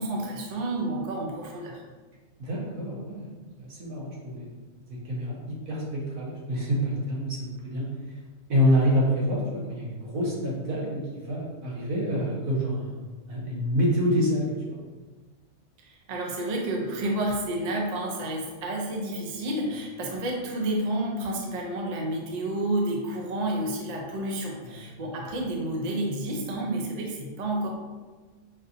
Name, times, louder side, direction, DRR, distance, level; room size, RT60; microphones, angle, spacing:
voice 1, 0.0-1.8 15.8-27.7, right 1 dB, 45° right, -1 dB, 0.6 m, -30 dB
voice 2, 2.4-3.3 3.6-4.5 4.9-8.2 8.5-12.9 13.3-14.8 24.6-24.9, equal, 85° right, -4 dB, 1.5 m, -27 dB
5.3 x 2.6 x 2.7 m, 1.3 s
omnidirectional pair, 1.4 m